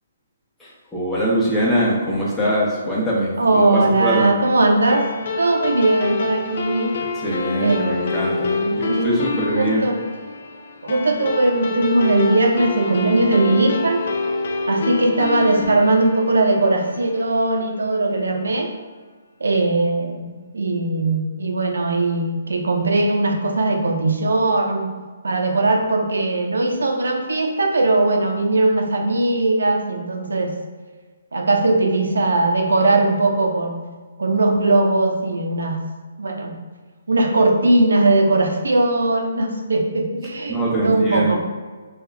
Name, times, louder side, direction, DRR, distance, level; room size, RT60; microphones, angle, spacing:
voice 1, 0.6-4.3 7.2-9.9 40.5-41.4, right 1 dB, 10° left, -6 dB, 0.9 m, -22 dB
voice 2, 3.4-5.1 5.4-6.9 7.6-8.1 8.6-9.2 9.5-10.0 10.8-14.0 14.7-18.7 19.4-24.9 25.2-30.5 31.3-33.8 34.2-35.8 36.2-36.5 37.1-41.4, right 2 dB, 85° right, 2 dB, 0.6 m, -19 dB
sound 1, 4.9-17.6, left 3 dB, 55° left, 0.4 m, -27 dB
3.4 x 2.3 x 3.4 m, 1.4 s
hypercardioid pair, 150°, 0 cm